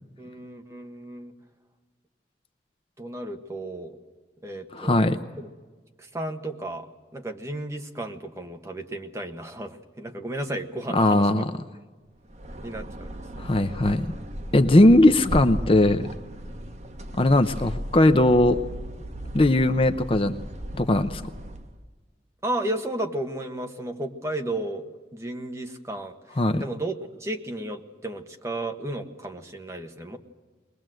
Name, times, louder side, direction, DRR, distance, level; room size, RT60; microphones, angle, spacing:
voice 1, 0.2-1.3 3.0-4.0 4.4-5.5 6.0-6.9 7.1-11.4 12.6-13.6 22.4-24.9 25.1-26.9 27.2-30.2, right 1 dB, 15° right, 4 dB, 1.3 m, -33 dB
voice 2, 4.7-5.2 10.9-11.5 13.4-14.1 14.5-16.1 17.2-18.6 19.3-20.4 20.7-21.2 26.4-26.6, left 1 dB, 30° left, 9 dB, 0.6 m, -19 dB
sound 1, 12.2-21.8, equal, 40° right, 1.2 m, -36 dB
22.0 x 19.5 x 7.7 m, 1.3 s
head